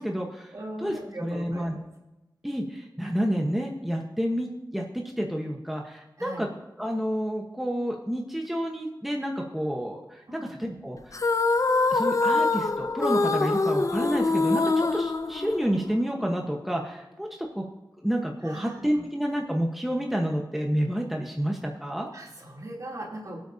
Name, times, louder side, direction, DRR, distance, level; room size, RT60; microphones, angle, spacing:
voice 1, 0.0-1.8 2.4-6.5 6.8-10.2 10.5-11.0 11.9-17.6 18.0-22.1, equal, 5° right, 0 dB, 1.2 m, -29 dB
voice 2, 0.5-1.7 6.2-6.5 10.3-10.5 18.4-18.8 22.1-23.4, right 1 dB, 50° right, -2 dB, 3.2 m, -39 dB
sound 1, 11.1-16.0, left 3 dB, 45° left, 0.6 m, -24 dB
23.0 x 8.4 x 2.8 m, 0.99 s
wide cardioid pair, 90°, 7 cm